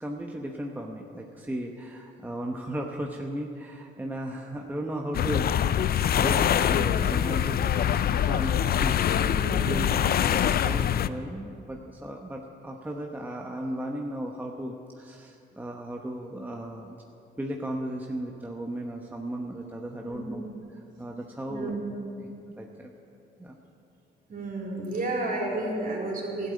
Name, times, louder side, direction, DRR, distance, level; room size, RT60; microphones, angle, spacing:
voice 1, 0.0-17.0 17.4-20.4 20.7-21.8 22.2-22.9 23.4-23.6, right 1 dB, 10° right, 1 dB, 1.0 m, -36 dB
sound 1, 5.1-11.1, left 9 dB, 50° left, 0.4 m, -24 dB
voice 2, 9.1-9.9 20.0-20.4 21.5-21.9 24.3-26.5, right 2 dB, 45° right, -2 dB, 3.9 m, -32 dB
12.5 x 8.4 x 9.1 m, 2.6 s
cardioid pair, 90°, 20 cm